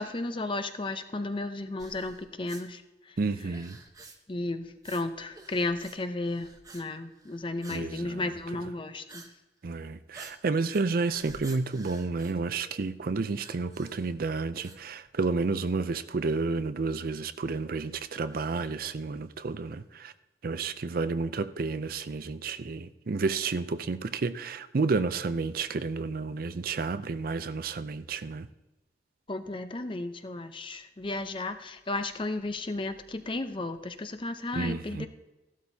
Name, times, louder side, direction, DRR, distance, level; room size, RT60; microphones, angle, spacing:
voice 1, 0.0-3.1 4.3-9.3 29.3-35.1, left 2 dB, 30° left, 0.7 m, -34 dB
sound 1, 1.8-2.6 3.4-4.4 4.8-5.0 5.3-6.0 6.2-6.8 7.1-7.9 8.2-8.5 9.1-9.3 9.6-9.7 10.1-13.0 13.4-14.2 14.6-15.4 15.7-15.8 16.4-16.5 17.5-18.8, right 3 dB, 20° right, 1.0 m, -51 dB
voice 2, 3.2-3.8 7.7-8.3 9.6-20.1 20.4-28.5 34.5-35.1, right 4 dB, 55° right, 0.5 m, -31 dB
15.0 x 12.0 x 2.8 m
head